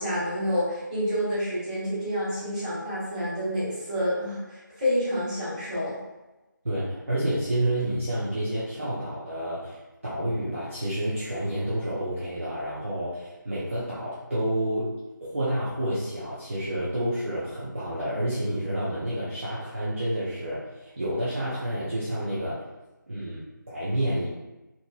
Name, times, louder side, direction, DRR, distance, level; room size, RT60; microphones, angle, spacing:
voice 1, 0.0-6.0, equal, 20° right, -12 dB, 1.0 m, -28 dB
voice 2, 6.6-22.6 23.1-24.3, right 1 dB, 40° right, -9 dB, 0.5 m, -29 dB
2.7 x 2.5 x 2.2 m, 1.0 s
figure-of-eight pair, 165°, 11 cm